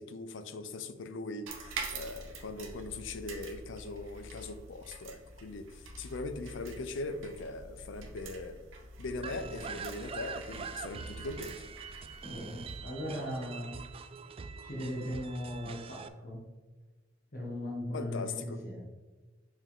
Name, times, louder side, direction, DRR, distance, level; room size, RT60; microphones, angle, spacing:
voice 1, 0.0-8.6 9.0-11.6 17.9-18.6, left 3 dB, 70° left, 10 dB, 0.5 m, -40 dB
sound 1, 1.5-12.8, right 3 dB, 90° right, 1.0 m, -46 dB
sound 2, 9.2-16.1, right 5 dB, 30° right, 0.3 m, -44 dB
voice 2, 12.2-13.9 14.6-16.5 17.3-18.9, equal, 50° left, -2 dB, 1.5 m, -38 dB
5.7 x 4.6 x 3.6 m, 1.3 s
head